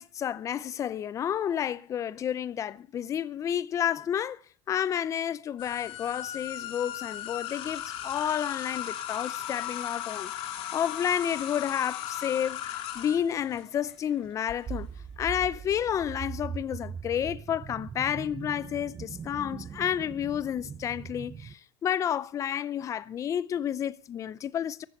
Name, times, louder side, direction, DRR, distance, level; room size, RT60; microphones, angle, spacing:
voice 1, 0.0-4.4 4.7-14.9 15.2-24.8, left 9 dB, 25° left, 0.6 m, -30 dB
sound 1, 5.6-14.5, left 11 dB, 50° left, 3.0 m, -37 dB
sound 2, 14.7-21.5, right 7 dB, 20° right, 0.6 m, -40 dB
14.5 x 9.6 x 7.9 m
cardioid pair, 160°, 12 cm